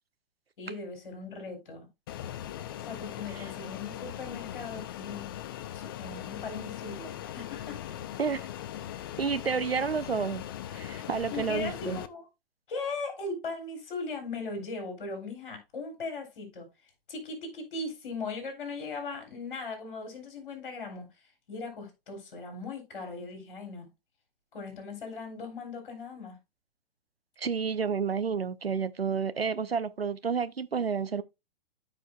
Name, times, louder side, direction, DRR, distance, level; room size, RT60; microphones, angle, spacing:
voice 1, 0.6-1.9 2.8-5.3 5.7-7.8 11.3-12.3 12.7-16.7 17.1-21.1 21.5-23.9 24.5-26.4, left 3 dB, 55° left, 3.2 m, -39 dB
Fixed-wing aircraft airplane, 2.1-12.1, left 11 dB, 25° left, 0.3 m, -40 dB
voice 2, 9.2-10.4 10.7-12.0 27.4-31.2, right 6 dB, 85° right, 0.7 m, -30 dB
13.5 x 5.0 x 2.3 m
figure-of-eight pair, 110°, 29 cm